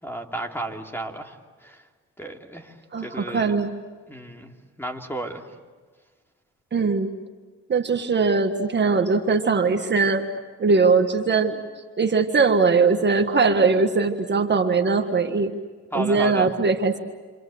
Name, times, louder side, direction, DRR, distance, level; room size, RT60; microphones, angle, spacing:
voice 1, 0.0-1.8 2.2-3.7 4.1-5.5 15.9-16.5, right 1 dB, 5° left, 3 dB, 3.0 m, -33 dB
voice 2, 2.9-3.7 6.7-7.1 7.7-10.2 10.6-11.6 12.0-15.6 15.9-17.0, right 4 dB, 35° right, 5 dB, 1.6 m, -20 dB
29.5 x 25.5 x 7.9 m, 1.5 s
cardioid pair, 90°, 30 cm